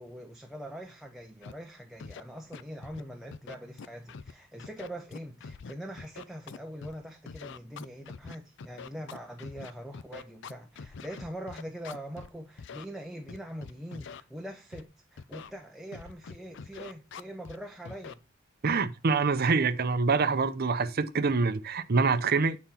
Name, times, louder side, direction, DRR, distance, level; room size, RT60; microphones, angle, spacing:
voice 1, 0.0-18.2, equal, ahead, 0.7 m, -43 dB
Scratching (performance technique), 1.4-1.5 2.0-2.2 2.5-3.0 3.3-4.3 4.6-6.9 7.3-12.3 12.6-12.8 13.3-14.2 14.7-14.8 15.2-15.5 15.9-17.6 17.9-18.1 18.7-18.8, left 5 dB, 65° left, 0.5 m, -44 dB
voice 2, 18.6-22.6, right 4 dB, 50° right, 0.7 m, -25 dB
8.9 x 4.2 x 5.5 m
head